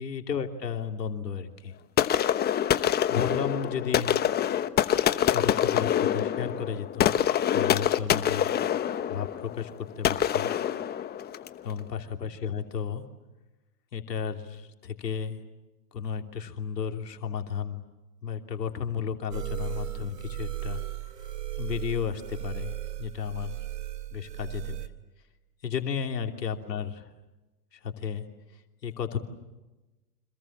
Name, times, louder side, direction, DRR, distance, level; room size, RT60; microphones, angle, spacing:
voice 1, 0.0-1.7 3.1-4.2 5.3-7.1 7.5-8.5 9.1-10.5 11.6-13.0 13.9-15.4 15.9-17.8 18.2-20.8 21.2-21.3 21.6-22.7 23.0-23.6 24.1-24.9 25.6-27.1 27.7-28.3 28.5-29.2, left 7 dB, 85° left, 4 dB, 3.1 m, -33 dB
sound 1, 2.0-11.6, left 10 dB, 20° left, 1.1 m, -26 dB
sound 2, 19.3-24.9, right 13 dB, 75° right, 2.3 m, -36 dB
29.5 x 26.5 x 7.4 m, 1.1 s
hypercardioid pair, 120°, 48 cm